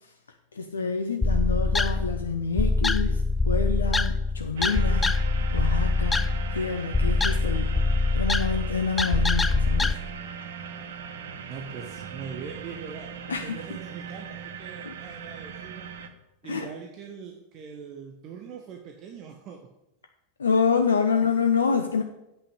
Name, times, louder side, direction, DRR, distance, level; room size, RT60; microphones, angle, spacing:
voice 1, 0.5-5.3 5.5-7.8 8.1-10.0 13.3-13.8 14.8-14.9 16.4-16.7 20.4-22.0, left 5 dB, 70° left, 6 dB, 0.7 m, -27 dB
sound 1, 1.2-9.9, left 3 dB, 10° left, 0.4 m, -24 dB
sound 2, 4.6-16.1, right 7 dB, 60° right, 1.0 m, -39 dB
voice 2, 11.4-15.9 16.4-19.7, right 6 dB, 35° right, 3 dB, 1.1 m, -42 dB
8.3 x 5.7 x 8.0 m, 0.92 s
figure-of-eight pair, 90°, 0 cm